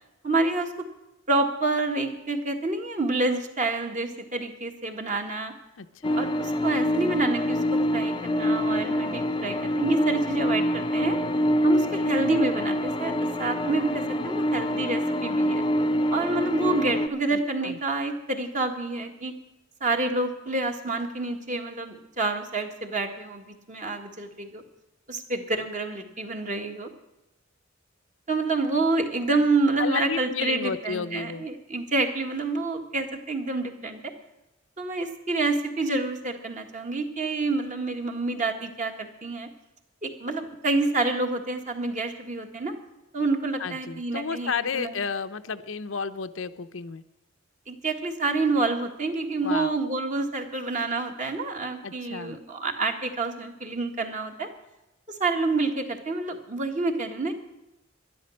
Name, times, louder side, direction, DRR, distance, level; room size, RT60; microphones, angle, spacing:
voice 1, 0.2-0.7 1.3-5.5 6.1-11.2 11.6-15.6 16.1-19.3 19.8-23.4 23.7-24.6 25.1-26.9 28.3-34.0 34.8-39.5 40.0-42.7 43.1-44.9 47.7-54.5 55.1-57.3, right 3 dB, 40° right, 4 dB, 1.7 m, -28 dB
voice 2, 5.8-6.3 17.3-17.8 29.8-31.5 43.6-47.0 49.4-49.8 51.8-52.4, left 5 dB, 85° left, 10 dB, 0.7 m, -32 dB
sound 1, 6.0-17.1, equal, 25° left, 0.6 m, -25 dB
12.0 x 11.0 x 6.3 m, 0.95 s
head